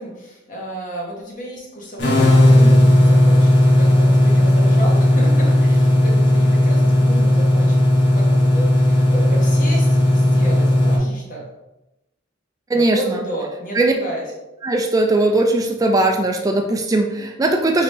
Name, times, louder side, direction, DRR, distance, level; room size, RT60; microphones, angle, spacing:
voice 1, 0.0-7.8 8.1-8.2 8.5-11.4 12.7-14.2, right 1 dB, 40° left, -3 dB, 1.1 m, -32 dB
sound 1, 2.0-11.0, left 1 dB, 60° left, 1.5 m, -14 dB
voice 2, 14.6-17.8, right 2 dB, 20° right, 3 dB, 0.3 m, -18 dB
4.9 x 2.7 x 3.3 m, 0.93 s
head